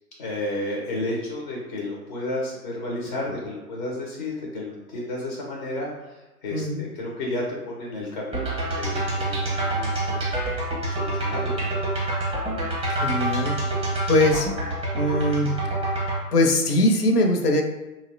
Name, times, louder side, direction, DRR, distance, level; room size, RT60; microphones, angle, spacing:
voice 1, 0.2-10.2 10.7-11.7, left 1 dB, 35° left, -3 dB, 0.4 m, -32 dB
voice 2, 6.5-6.8 12.9-13.6 14.1-14.5 14.9-15.5 16.3-17.6, left 1 dB, 80° left, 4 dB, 0.6 m, -21 dB
sound 1, 8.3-16.2, right 2 dB, 10° right, 0.6 m, -26 dB
2.7 x 2.0 x 2.6 m, 1.1 s
figure-of-eight pair, 120°, 45 cm